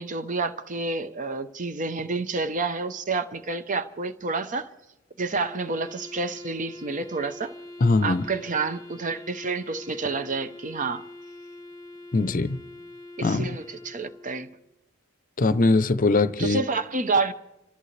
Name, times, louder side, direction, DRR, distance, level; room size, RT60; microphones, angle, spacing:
voice 1, 0.0-4.7 5.2-7.5 8.0-11.0 13.2-14.5 16.4-17.3, right 3 dB, 40° right, 0.8 m, -29 dB
Wind instrument woodwind instrument, 5.4-14.7, left 2 dB, 15° left, 1.1 m, -44 dB
voice 2, 7.8-8.2 12.1-12.6 13.2-13.6 15.4-16.6, left 3 dB, 40° left, 0.6 m, -21 dB
28.5 x 14.0 x 3.3 m
head